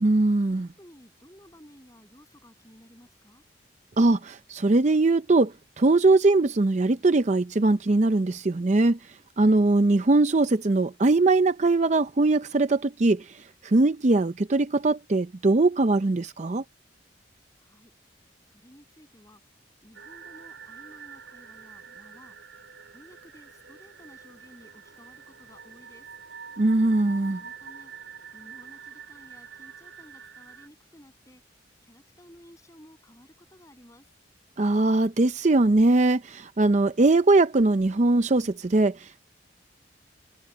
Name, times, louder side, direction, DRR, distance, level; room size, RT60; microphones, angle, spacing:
voice 1, 0.0-0.7 4.0-9.0 9.4-16.6 26.6-27.4 34.6-39.3, right 2 dB, 40° right, 0.5 m, -21 dB
voice 2, 0.8-3.4 17.6-17.9 18.5-19.4 19.8-22.6 22.9-26.1 27.3-31.4 31.8-34.1, equal, 15° left, 7.8 m, -54 dB
sound 1, 19.9-30.7, right 6 dB, 80° right, 4.4 m, -46 dB
head